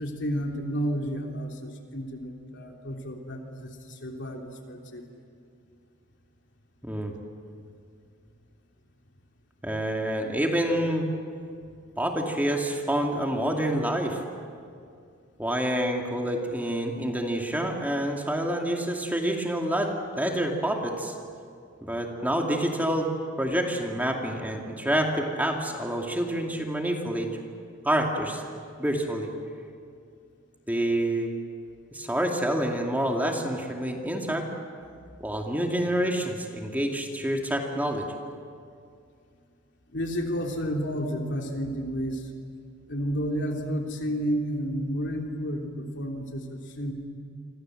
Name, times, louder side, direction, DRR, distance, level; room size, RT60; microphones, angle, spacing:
voice 1, 0.0-5.0 39.9-42.3 42.9-46.9, equal, 60° left, 2 dB, 3.3 m, -31 dB
voice 2, 9.6-11.1 12.0-14.2 15.4-21.1 21.8-23.1 23.4-27.3 27.8-28.4 28.8-29.3 30.7-31.3 31.9-34.5 35.2-38.1, right 1 dB, 10° right, 1 dB, 2.5 m, -27 dB
28.5 x 25.5 x 7.8 m, 2.3 s
head